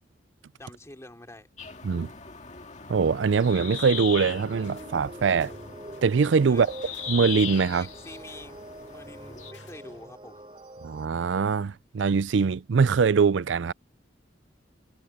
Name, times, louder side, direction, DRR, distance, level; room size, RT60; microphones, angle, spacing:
voice 1, 0.6-1.5 6.5-6.7 7.7-10.4, left 1 dB, 15° left, 2.8 m, -46 dB
sound 1, 1.6-9.5, left 7 dB, 40° left, 2.0 m, -39 dB
voice 2, 2.9-5.5 6.0-6.7 7.1-7.9 10.8-13.7, right 5 dB, 80° right, 0.4 m, -23 dB
sound 2, 3.0-11.1, right 1 dB, 30° right, 3.1 m, -45 dB
sound 3, 4.6-5.0 5.3-10.1, left 6 dB, 85° left, 2.5 m, -58 dB
head